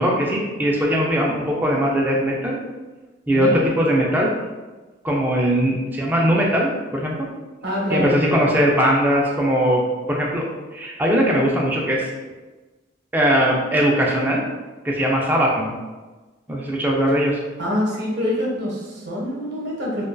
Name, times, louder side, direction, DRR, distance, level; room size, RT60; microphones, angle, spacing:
voice 1, 0.0-2.6 3.3-4.3 5.0-7.3 7.9-9.8 10.1-10.4 10.7-12.1 13.1-14.4 14.8-15.7 16.5-17.4, equal, 10° right, -2 dB, 0.3 m, -20 dB
voice 2, 7.6-8.2 17.6-20.0, left 1 dB, 60° right, -3 dB, 0.7 m, -25 dB
2.5 x 2.2 x 2.2 m, 1.2 s
head